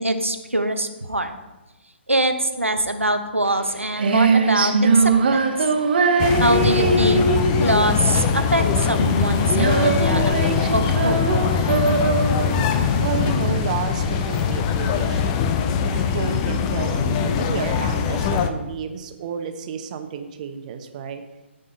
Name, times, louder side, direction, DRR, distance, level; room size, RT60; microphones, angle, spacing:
voice 1, 0.0-1.3 2.1-5.5 6.4-7.2 7.6-10.3 10.7-11.3, right 1 dB, 90° right, 7 dB, 1.1 m, -23 dB
Female singing, 3.5-14.4, right 4 dB, 50° right, 1.3 m, -21 dB
sound 1, 6.2-18.5, left 6 dB, 25° left, 0.7 m, -22 dB
voice 2, 13.0-21.2, right 7 dB, 35° right, 7 dB, 1.0 m, -31 dB
16.0 x 5.4 x 4.0 m, 1.1 s
figure-of-eight pair, 130°, 7 cm